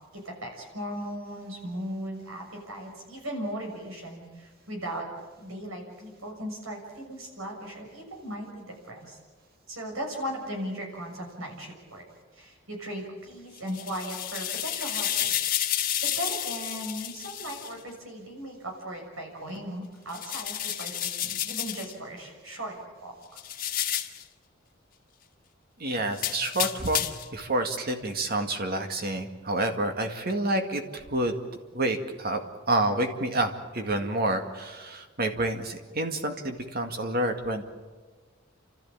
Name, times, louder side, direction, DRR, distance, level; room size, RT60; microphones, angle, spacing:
voice 1, 0.2-5.0 5.4-9.2 9.7-12.1 12.3-15.4 16.0-22.8 23.0-23.4, equal, 85° right, 1 dB, 6.8 m, -37 dB
sound 1, 13.6-17.7 20.1-21.9 23.4-24.2 26.1-27.3, left 10 dB, 45° left, 1.5 m, -31 dB
voice 2, 25.8-27.0 27.3-31.3 31.7-32.4 32.7-37.6, right 1 dB, 50° right, 5 dB, 2.1 m, -28 dB
30.0 x 13.5 x 8.8 m, 1.4 s
head